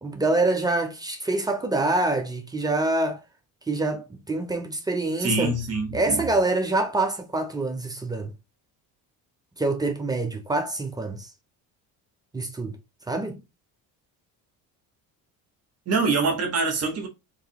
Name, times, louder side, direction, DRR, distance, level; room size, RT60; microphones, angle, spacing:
voice 1, 0.0-3.2 3.7-5.5 5.9-8.3 9.6-11.3 12.3-12.8 13.1-13.4, right 2 dB, 10° right, 0.3 m, -25 dB
voice 2, 5.2-6.2 15.9-17.1, right 3 dB, 40° right, 1.0 m, -25 dB
3.9 x 2.6 x 2.7 m
cardioid pair, 150°, 37 cm